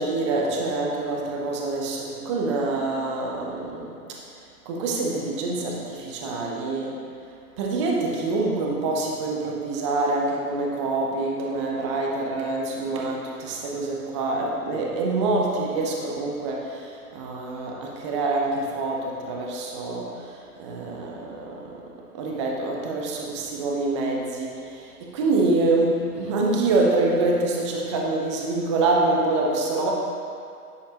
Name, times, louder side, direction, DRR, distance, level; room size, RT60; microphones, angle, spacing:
voice 1, 0.0-4.2 4.7-7.0 7.6-21.8 22.1-29.9, right 2 dB, 20° right, -1 dB, 0.5 m, -26 dB
10.5 x 5.2 x 2.8 m, 2.5 s
hypercardioid pair, 130°, 47 cm